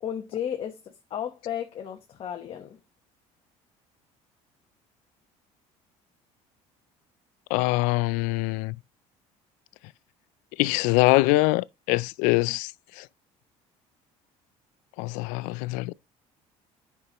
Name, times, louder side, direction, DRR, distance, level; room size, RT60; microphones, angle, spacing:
voice 1, 0.0-2.8, left 9 dB, 45° left, 1.0 m, -34 dB
voice 2, 7.5-8.8 10.6-13.1 15.0-15.9, left 22 dB, 85° left, 0.4 m, -24 dB
9.6 x 6.0 x 2.9 m
cardioid pair, 125°, 13 cm